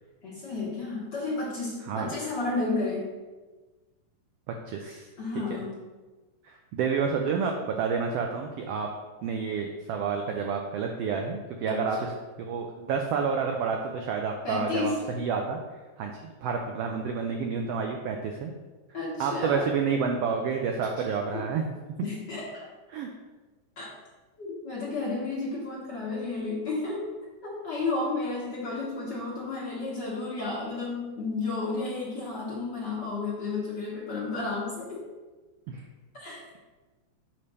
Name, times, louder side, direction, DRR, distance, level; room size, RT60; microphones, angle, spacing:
voice 1, 0.2-3.1 5.2-5.8 11.7-11.9 14.4-15.0 18.9-19.7 21.3-21.4 22.0-22.7 23.8-23.9 24.4-27.0 27.4-35.0 36.1-36.6, left 3 dB, 50° left, -6 dB, 1.5 m, -32 dB
voice 2, 4.7-5.1 5.3-5.4 6.4-8.9 9.2-12.1 12.4-15.6 16.0-18.5 19.2-21.6 22.9-23.1 35.7-35.8, right 5 dB, 85° right, 2 dB, 1.4 m, -29 dB
6.9 x 3.3 x 5.4 m, 1.2 s
omnidirectional pair, 3.4 m